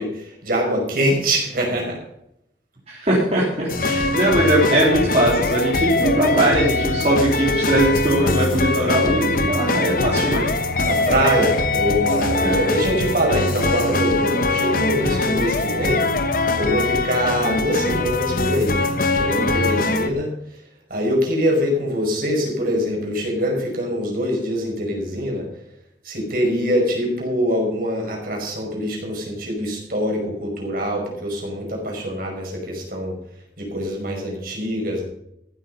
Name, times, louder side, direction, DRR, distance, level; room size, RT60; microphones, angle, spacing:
voice 1, 0.0-2.0 10.8-16.1 16.6-18.8 19.1-20.3 20.9-25.5 26.0-33.2 33.6-35.0, equal, 55° right, 0 dB, 5.4 m, -24 dB
voice 2, 2.9-10.5 12.4-12.6, right 1 dB, 35° right, -6 dB, 3.8 m, -20 dB
sound 1, 3.7-20.1, left 2 dB, 50° left, 1.1 m, -22 dB
14.5 x 9.4 x 5.6 m, 0.78 s
head